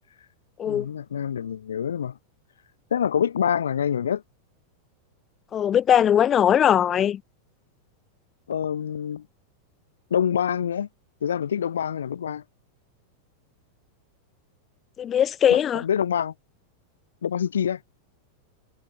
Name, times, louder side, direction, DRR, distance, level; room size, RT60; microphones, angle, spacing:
voice 1, 0.6-2.2 2.9-4.2 8.5-9.2 10.1-10.9 11.2-12.4 15.5-16.3 17.2-17.8, left 8 dB, 65° left, 2.6 m, -26 dB
voice 2, 5.5-7.2 15.0-15.8, left 9 dB, 25° left, 1.6 m, -20 dB
figure-of-eight pair, 90°, 0 cm